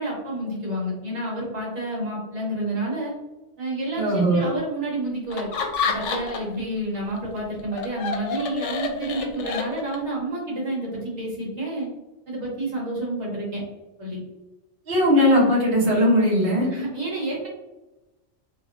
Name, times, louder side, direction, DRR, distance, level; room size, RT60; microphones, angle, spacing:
voice 1, 0.0-3.1 3.6-5.5 5.9-11.9 12.3-13.6 14.0-14.2 16.7-17.5, right 1 dB, 70° right, -5 dB, 1.4 m, -29 dB
voice 2, 4.0-4.5 14.9-16.7, equal, 50° right, -6 dB, 1.2 m, -19 dB
Laughter, 5.3-6.6 6.9-10.1, left 5 dB, 80° left, 0.9 m, -29 dB
2.9 x 2.7 x 2.5 m, 1.1 s
omnidirectional pair, 1.2 m